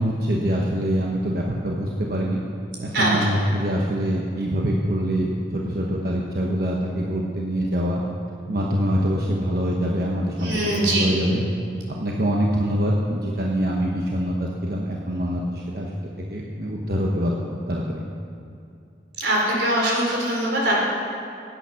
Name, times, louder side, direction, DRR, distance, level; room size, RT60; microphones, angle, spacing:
voice 1, 0.0-2.4 2.8-8.0 8.5-11.4 11.9-18.1, equal, 55° right, -2 dB, 1.2 m, -24 dB
voice 2, 10.4-11.1 19.2-20.7, right 1 dB, 90° right, -3 dB, 4.1 m, -22 dB
17.0 x 9.1 x 5.9 m, 2.5 s
head